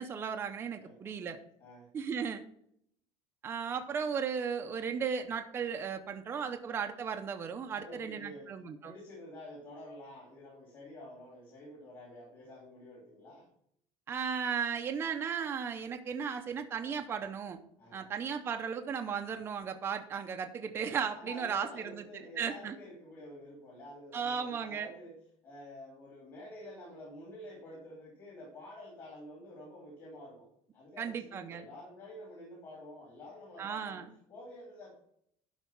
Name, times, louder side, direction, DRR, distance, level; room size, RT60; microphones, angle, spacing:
voice 1, 0.0-1.4 1.9-2.5 3.4-8.9 14.1-17.6 17.9-22.7 24.1-24.9 31.0-31.7 33.6-34.1, right 6 dB, 20° right, 5 dB, 0.6 m, -36 dB
voice 2, 0.8-1.1 1.6-1.9 7.7-8.5 8.8-13.5 17.8-18.0 21.1-25.1 25.4-35.0, left 1 dB, 35° left, -4 dB, 2.9 m, -49 dB
11.5 x 4.0 x 5.9 m, 0.70 s
cardioid pair, 175°, 11 cm